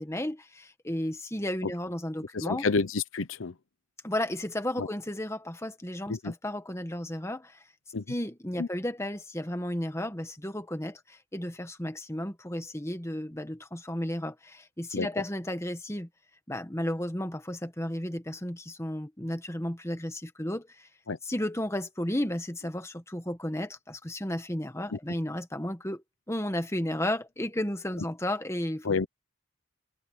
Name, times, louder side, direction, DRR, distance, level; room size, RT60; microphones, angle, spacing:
voice 1, 0.0-2.6 4.0-7.6 8.1-16.1 16.5-20.9 21.2-28.9, left 1 dB, 15° left, 1.6 m, -33 dB
voice 2, 2.3-3.5 4.8-4.9 6.1-6.3 7.9-8.0 8.6-8.7 14.9-15.1 21.1-21.2 24.9-25.0 28.8-29.1, left 4 dB, 80° left, 0.8 m, -29 dB
head